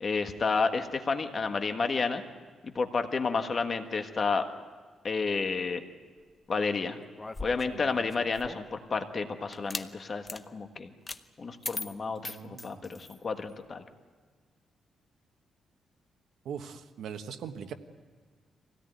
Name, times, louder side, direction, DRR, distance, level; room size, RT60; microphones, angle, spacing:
voice 1, 0.0-2.2 2.6-4.4 5.0-5.8 6.5-7.0 7.4-10.9 11.4-13.8, left 4 dB, 35° left, 7 dB, 1.4 m, -31 dB
sound 1, 7.1-8.7 9.5-9.9 10.2-10.4 11.1-11.2 11.6-13.2, left 3 dB, 20° left, 0.8 m, -39 dB
voice 2, 12.2-13.1 16.4-17.7, right 7 dB, 80° right, 6 dB, 1.3 m, -41 dB
24.5 x 17.5 x 9.4 m, 1.5 s
cardioid pair, 140°, 0 cm